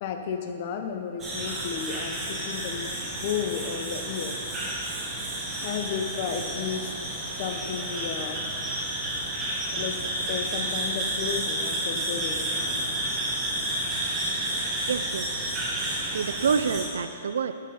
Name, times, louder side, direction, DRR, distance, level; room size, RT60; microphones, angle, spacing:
voice 1, 0.0-4.3 5.6-6.9 7.4-8.4 9.7-10.0 10.3-12.8, left 7 dB, 35° left, 5 dB, 0.8 m, -33 dB
sound 1, 1.2-16.9, right 1 dB, 15° right, 1.6 m, -31 dB
voice 2, 14.9-15.4 16.1-17.5, right 6 dB, 90° right, 11 dB, 0.5 m, -27 dB
9.8 x 6.8 x 5.1 m, 2.7 s
hypercardioid pair, 170°, 0 cm